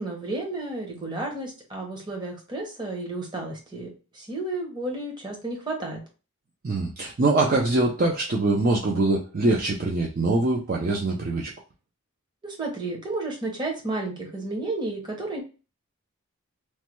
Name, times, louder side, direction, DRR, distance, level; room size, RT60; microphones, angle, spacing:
voice 1, 0.0-6.0 12.4-15.4, right 2 dB, 20° right, 0 dB, 0.8 m, -32 dB
voice 2, 6.6-11.5, right 2 dB, 40° right, -2 dB, 0.4 m, -23 dB
3.2 x 2.2 x 2.9 m, 0.33 s
head